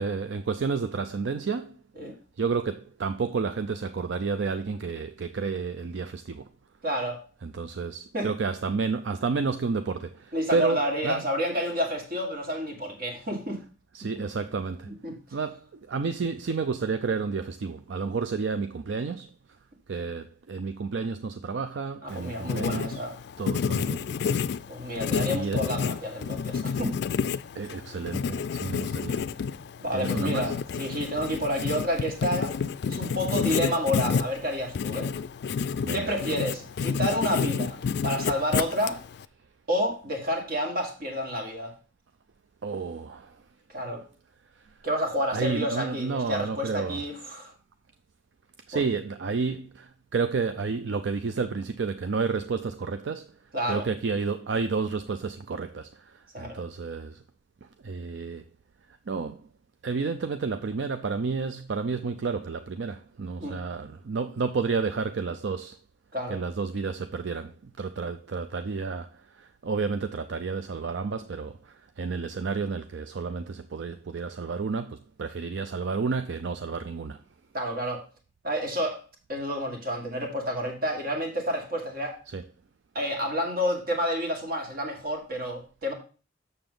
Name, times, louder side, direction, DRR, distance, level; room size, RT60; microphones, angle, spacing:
voice 1, 0.0-1.8 2.4-6.5 7.4-11.2 13.9-14.9 15.3-19.3 19.9-23.0 23.4-24.0 25.3-25.6 27.5-29.2 29.9-30.5 35.8-36.1 42.6-43.4 43.9-44.0 44.6-44.7 45.3-47.0 48.7-53.3 53.7-57.2 57.8-58.4 59.1-59.4 59.8-65.8 66.3-77.2 82.3-82.4, right 4 dB, 75° right, 0.4 m, -31 dB
voice 2, 6.8-7.2 8.1-8.3 10.3-13.6 14.1-14.2 14.9-15.2 22.0-23.2 24.7-27.0 29.8-32.6 32.9-35.1 35.9-39.0 39.7-41.7 43.7-44.0 44.8-47.5 48.7-48.8 53.5-53.9 56.3-56.6 63.4-63.6 66.1-66.4 77.5-78.0 78.4-79.0 79.3-82.2 83.0-85.9, equal, 55° right, 1.9 m, -29 dB
Writing, 22.1-39.2, left 6 dB, 60° left, 0.3 m, -30 dB
7.0 x 6.7 x 3.8 m
head